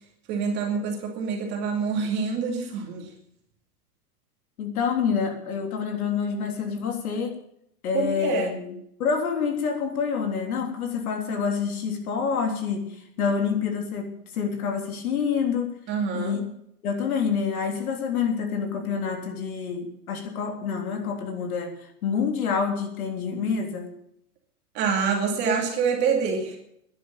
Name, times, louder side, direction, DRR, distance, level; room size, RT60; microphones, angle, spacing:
voice 1, 0.3-3.1 7.9-8.5 15.9-16.4 24.7-26.6, right 5 dB, 20° right, 1 dB, 2.4 m, -26 dB
voice 2, 4.6-7.4 7.8-8.7 9.0-15.7 16.1-16.4 16.8-23.9, left 6 dB, 65° left, 4 dB, 3.5 m, -27 dB
12.0 x 10.5 x 8.9 m, 0.73 s
supercardioid pair, 175°, 47 cm